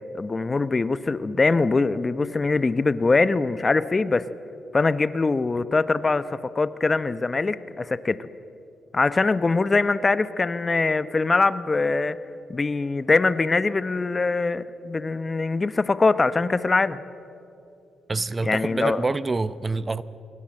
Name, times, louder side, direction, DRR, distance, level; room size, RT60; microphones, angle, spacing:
voice 1, 0.1-4.2 4.7-8.3 8.9-12.2 12.5-17.0 18.4-19.0, left 3 dB, 30° left, 14 dB, 0.9 m, -23 dB
voice 2, 18.1-20.0, right 3 dB, 30° right, 15 dB, 0.8 m, -26 dB
26.0 x 23.0 x 7.7 m, 2.7 s
cardioid pair, 75°, 0 cm